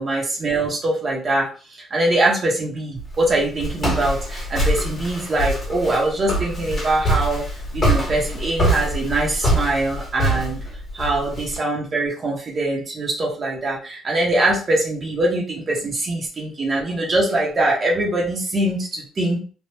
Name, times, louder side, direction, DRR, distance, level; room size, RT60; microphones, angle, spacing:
voice 1, 0.0-7.4 7.7-10.6 10.9-19.4, right 2 dB, 35° right, -2 dB, 1.0 m, -23 dB
Walk footsteps, 3.0-11.6, equal, 30° left, 1.7 m, -24 dB
3.3 x 2.5 x 2.9 m, 0.38 s
cardioid pair, 110°, 0 cm